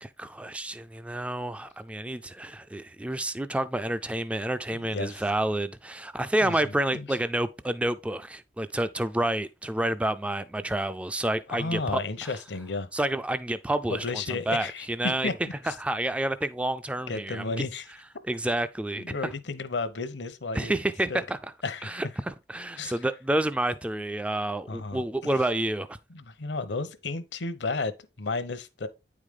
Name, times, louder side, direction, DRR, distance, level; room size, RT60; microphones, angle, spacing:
voice 1, 0.0-12.3 12.9-15.3 15.7-17.4 18.3-19.0 20.5-21.4 21.8-26.0, right 1 dB, 5° right, 0.3 m, -29 dB
voice 2, 4.7-5.2 6.4-6.6 6.9-7.1 11.5-12.9 13.9-15.3 15.6-15.8 17.1-17.9 19.0-20.7 21.1-21.2 21.6-22.0 22.8-23.0 24.7-25.4 26.1-28.9, left 3 dB, 75° left, 0.8 m, -33 dB
9.1 x 4.9 x 3.6 m
head